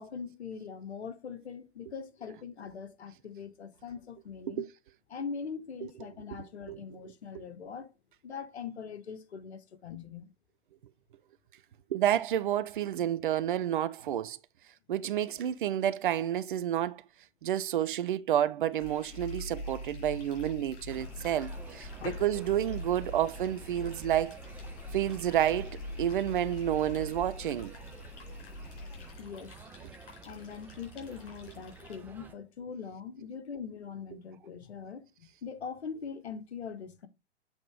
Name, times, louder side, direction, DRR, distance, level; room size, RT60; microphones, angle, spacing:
voice 1, 0.0-4.7 5.1-7.9 8.2-10.3 22.0-22.2 29.2-29.6 30.2-37.1, left 6 dB, 65° left, 1.2 m, -42 dB
voice 2, 11.9-14.4 14.9-17.0 17.4-21.9 22.2-24.4 24.9-27.7, right 11 dB, 45° right, 0.6 m, -30 dB
sound 1, 18.7-31.9, left 5 dB, 45° left, 4.6 m, -57 dB
sound 2, 18.8-29.1, left 1 dB, 20° left, 4.6 m, -43 dB
sound 3, 20.9-32.3, right 4 dB, 5° right, 0.5 m, -51 dB
7.9 x 3.8 x 4.7 m
figure-of-eight pair, 110°, 35 cm